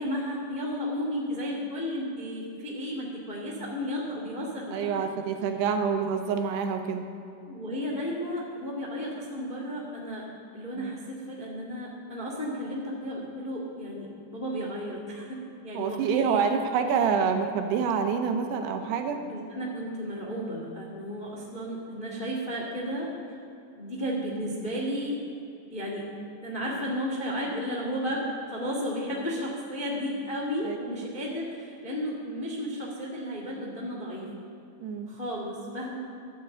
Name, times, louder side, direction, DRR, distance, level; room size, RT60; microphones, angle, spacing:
voice 1, 0.0-5.0 7.5-10.2 10.5-16.5 18.8-23.3 23.7-25.2 25.7-26.1 26.4-34.3 35.1-36.0, equal, 55° left, -2 dB, 0.5 m, -33 dB
voice 2, 4.7-7.1 10.8-10.9 15.7-19.2 30.6-30.8 34.8-35.1, right 6 dB, 80° right, 5 dB, 3.0 m, -27 dB
13.0 x 8.9 x 8.3 m, 2.8 s
omnidirectional pair, 4.8 m